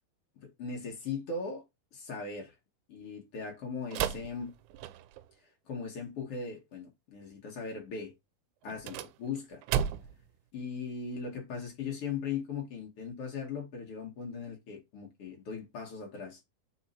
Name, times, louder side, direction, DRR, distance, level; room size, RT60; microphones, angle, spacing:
voice 1, 0.4-1.6 1.9-2.6 2.9-4.5 5.7-8.1 8.6-9.6 10.5-16.4, left 5 dB, 55° left, 1.7 m, -39 dB
sound 1, 3.9-5.3 8.6-10.3, right 9 dB, 90° right, 2.5 m, -34 dB
5.1 x 4.7 x 4.2 m
omnidirectional pair, 4.3 m